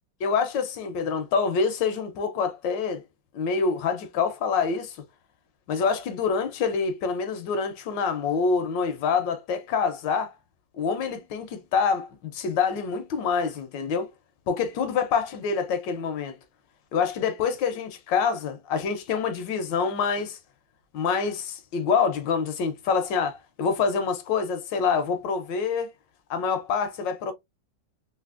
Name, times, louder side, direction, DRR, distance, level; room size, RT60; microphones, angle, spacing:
voice 1, 0.2-3.0 3.3-5.0 5.7-10.3 10.7-14.1 14.5-16.3 16.9-20.4 20.9-25.9 26.3-27.3, left 5 dB, 75° left, 1.3 m, -26 dB
3.3 x 2.6 x 2.4 m
omnidirectional pair, 2.1 m